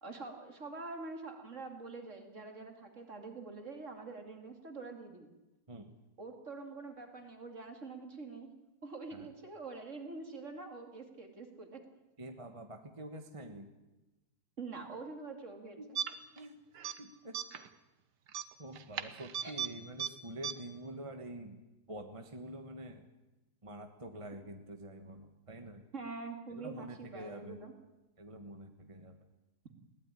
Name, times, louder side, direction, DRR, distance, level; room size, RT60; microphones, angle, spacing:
voice 1, 0.0-5.3 6.2-8.5 8.8-11.8 14.6-15.8 19.4-19.5 25.9-27.7, right 3 dB, 45° right, 5 dB, 2.9 m, -45 dB
voice 2, 12.2-13.7 15.8-15.9 16.3-16.5 17.0-17.4 18.6-21.6 21.9-23.1 23.6-25.8 26.5-27.6 28.2-29.2, right 1 dB, 20° right, 6 dB, 1.5 m, -47 dB
sound 1, 16.0-16.4 16.7-17.0 17.3-17.7 18.3-19.7 20.0-20.1 20.4-20.5, right 8 dB, 90° right, 1.7 m, -37 dB
22.0 x 17.5 x 10.0 m, 1.1 s
omnidirectional pair, 1.8 m